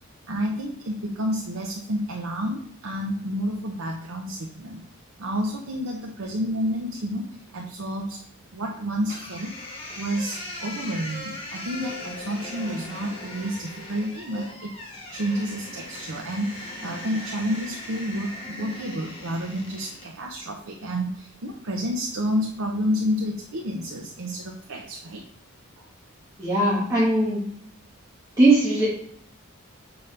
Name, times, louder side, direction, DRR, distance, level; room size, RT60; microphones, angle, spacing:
voice 1, 0.3-4.9 5.2-8.2 8.5-9.5 10.0-14.8 15.1-25.2, equal, 80° right, 0 dB, 0.7 m, -30 dB
sound 1, 9.1-20.1, left 1 dB, 25° left, 1.3 m, -39 dB
voice 2, 26.4-27.4 28.4-28.9, right 2 dB, 15° right, -9 dB, 1.4 m, -19 dB
6.9 x 5.4 x 3.3 m, 0.66 s
head